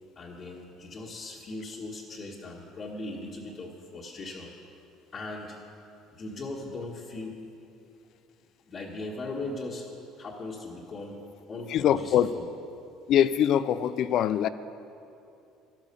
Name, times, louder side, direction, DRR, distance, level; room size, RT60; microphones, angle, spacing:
voice 1, 0.2-4.5 5.1-5.6 6.1-7.4 8.7-11.2 11.5-12.5, left 2 dB, 35° left, -5 dB, 1.7 m, -39 dB
voice 2, 11.7-12.3 13.1-14.5, left 10 dB, 55° left, 14 dB, 0.5 m, -23 dB
12.0 x 12.0 x 7.0 m, 2.7 s
cardioid pair, 120°, 0 cm